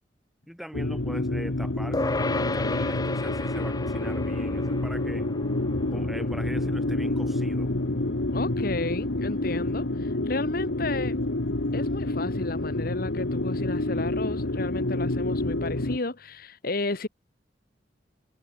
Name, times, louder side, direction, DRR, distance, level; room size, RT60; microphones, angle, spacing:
voice 1, 0.5-5.3 5.9-7.7, equal, ahead, 4.1 m, -41 dB
sound 1, 0.7-16.0, left 2 dB, 90° left, 1.5 m, -28 dB
sound 2, 1.9-11.6, left 2 dB, 20° left, 0.7 m, -35 dB
voice 2, 8.3-11.2 11.7-17.1, left 2 dB, 55° left, 1.5 m, -32 dB
head